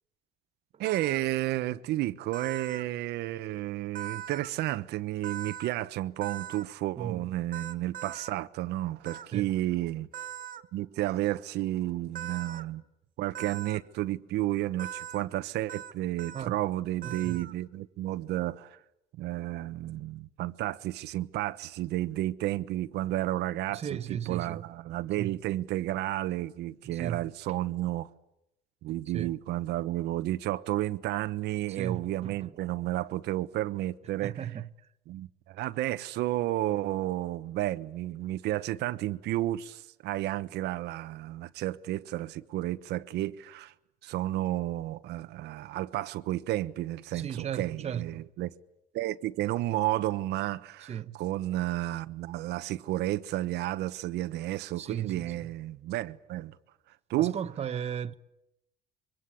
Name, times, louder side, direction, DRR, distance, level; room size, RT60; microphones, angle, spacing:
sound 1, 0.8-1.2 2.3-2.8 3.9-4.5 5.2-5.7 6.2-6.6 7.5-8.3 9.0-9.3 10.1-10.6 12.1-12.6 13.3-13.8 14.8-15.2 15.7-15.9 16.2-16.5 17.0-17.5, right 10 dB, 55° right, 1.7 m, -40 dB
voice 1, 0.8-10.1 10.7-12.8 13.2-18.8 19.2-28.1 28.8-34.5 35.1-43.7 44.0-48.5 48.9-56.5 57.1-57.4, right 15 dB, 80° right, 1.1 m, -32 dB
voice 2, 7.0-7.3 9.3-9.5 16.3-16.6 17.0-17.4 23.7-24.6 25.2-25.3 26.9-27.2 29.1-29.3 31.7-32.5 34.2-34.7 47.1-48.2 50.9-51.2 54.8-55.5 57.2-58.1, right 9 dB, 40° right, 1.0 m, -36 dB
26.0 x 23.5 x 8.5 m
cardioid pair, 110°, 17 cm